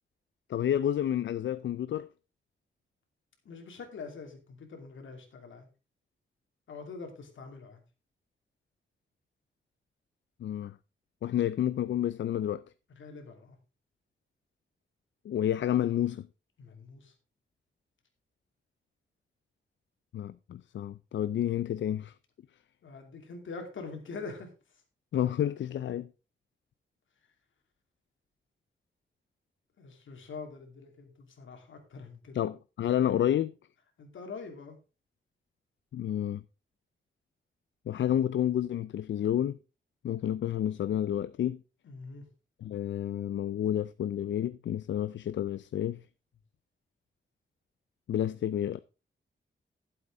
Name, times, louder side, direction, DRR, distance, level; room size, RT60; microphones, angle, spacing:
voice 1, 0.5-2.1 10.4-10.7 11.2-12.6 15.3-16.3 20.1-22.1 25.1-26.1 32.3-33.5 35.9-36.4 37.9-39.6 40.0-41.6 42.6-46.0 48.1-48.8, left 11 dB, 75° left, 0.4 m, -30 dB
voice 2, 3.4-5.7 6.7-7.8 12.9-13.6 16.6-17.1 22.8-24.8 29.8-32.4 34.0-34.8 41.8-42.3, left 4 dB, 90° left, 2.7 m, -44 dB
12.0 x 7.8 x 3.8 m
wide cardioid pair, 150°, 19 cm